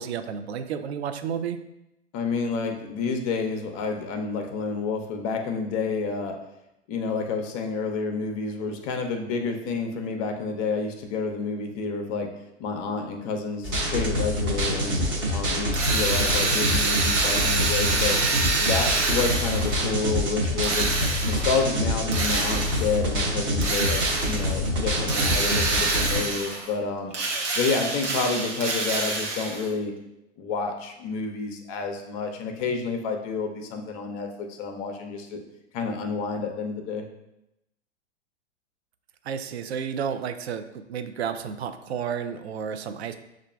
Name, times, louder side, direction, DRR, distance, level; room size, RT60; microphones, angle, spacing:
voice 1, 0.0-1.6 39.2-43.2, right 7 dB, 65° right, 9 dB, 0.4 m, -31 dB
voice 2, 2.1-6.4 6.9-12.3 12.6-15.0 15.3-18.2 18.6-20.9 21.2-27.1 27.5-29.9 30.4-35.4 35.7-37.0, left 4 dB, 30° left, 4 dB, 0.5 m, -29 dB
sound 1, 13.6-26.2, equal, 30° right, 0.9 m, -26 dB
Drill, 15.7-19.9 20.6-21.6 22.1-23.0 23.6-24.5 25.1-26.7 27.1-29.7, right 3 dB, 85° right, 0.9 m, -27 dB
6.4 x 2.5 x 2.3 m, 0.88 s
figure-of-eight pair, 105°, 36 cm